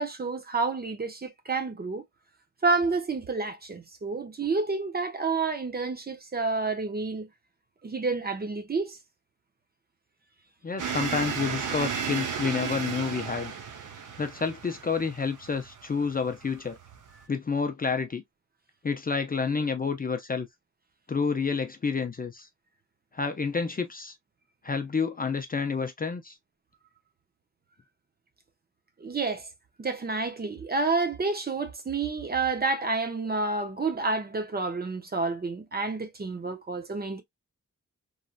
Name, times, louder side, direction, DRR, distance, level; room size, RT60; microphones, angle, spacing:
voice 1, 0.0-2.0 2.6-7.3 7.8-9.0 29.0-29.5 29.8-37.2, right 3 dB, 30° right, 0.6 m, -29 dB
voice 2, 10.6-13.5 14.2-16.8 17.3-18.2 18.8-20.5 21.1-22.5 23.1-24.1 24.6-26.4, left 5 dB, 30° left, 0.4 m, -29 dB
sound 1, 10.8-17.2, right 6 dB, 75° right, 0.7 m, -34 dB
3.1 x 2.6 x 2.3 m
wide cardioid pair, 135°, 31 cm